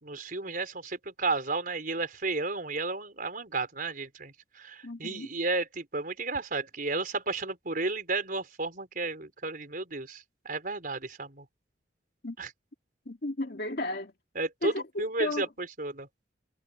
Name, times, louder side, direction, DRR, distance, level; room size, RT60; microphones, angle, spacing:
voice 1, 0.0-11.4 12.4-12.5 14.3-16.1, right 3 dB, 50° right, 4.8 m, -33 dB
voice 2, 4.8-5.3 12.2-12.4 13.1-14.1 14.6-15.5, left 2 dB, 60° left, 2.4 m, -34 dB
head